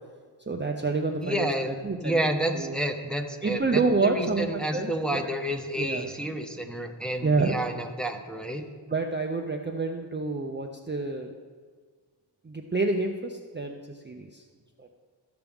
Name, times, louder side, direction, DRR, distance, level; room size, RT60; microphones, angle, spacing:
voice 1, 0.5-2.3 2.5-2.8 3.4-5.2 5.8-6.1 7.2-7.6 8.9-11.3 12.4-13.8 14.0-14.4 14.8-14.9, right 3 dB, 25° right, 2 dB, 0.5 m, -28 dB
voice 2, 1.2-1.7 2.0-8.6, right 1 dB, ahead, 3 dB, 0.8 m, -30 dB
14.0 x 5.9 x 3.5 m, 1.5 s
wide cardioid pair, 75°, 48 cm